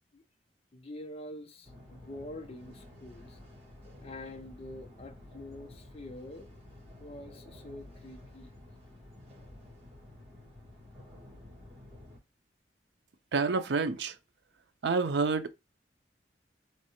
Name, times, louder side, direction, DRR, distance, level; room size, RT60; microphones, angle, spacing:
voice 1, 0.7-3.4 4.0-6.5 7.0-8.5, left 1 dB, 35° left, 0.5 m, -46 dB
sound 1, 1.6-12.2, left 1 dB, 35° right, 1.7 m, -51 dB
voice 2, 13.3-14.1 14.8-15.5, right 4 dB, 80° right, 0.5 m, -28 dB
3.3 x 3.0 x 2.9 m
head